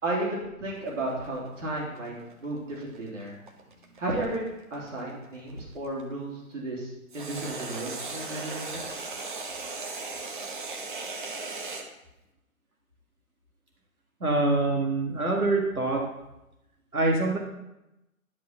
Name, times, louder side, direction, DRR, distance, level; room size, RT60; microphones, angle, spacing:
voice 1, 0.0-2.1 2.4-3.4 4.0-8.9, right 2 dB, 55° right, -3 dB, 3.1 m, -33 dB
sound 1, 0.8-6.0 7.1-11.9, right 3 dB, 35° right, 1.1 m, -37 dB
voice 2, 14.2-16.1 16.9-17.4, right 2 dB, 75° right, -1 dB, 2.1 m, -25 dB
11.0 x 6.1 x 5.8 m, 0.93 s
figure-of-eight pair, 135°, 44 cm